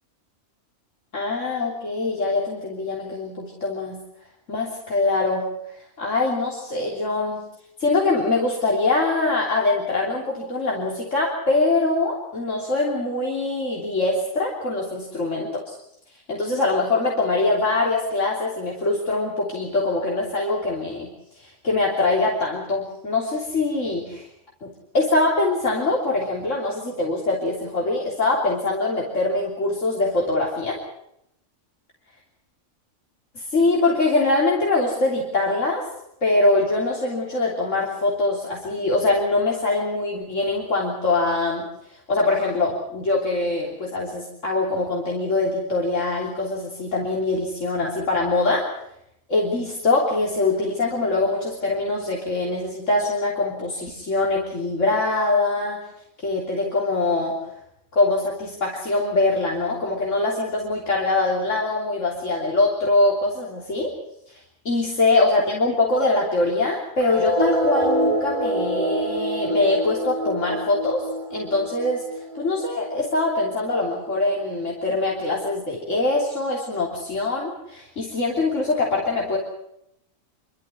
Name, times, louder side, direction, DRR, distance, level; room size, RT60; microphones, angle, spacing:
voice 1, 1.1-4.0 4.5-5.4 6.0-7.4 7.8-15.8 16.3-21.1 21.4-24.3 24.6-24.7 24.9-30.8 33.4-35.8 36.2-41.7 41.9-48.6 49.3-55.8 56.2-57.4 57.9-63.9 64.7-71.0 71.3-72.0 72.4-79.4, left 2 dB, 65° left, -3 dB, 3.6 m, -23 dB
sound 1, 67.0-74.0, right 1 dB, 25° right, 6.3 m, -26 dB
26.5 x 13.0 x 9.7 m, 0.79 s
omnidirectional pair, 1.4 m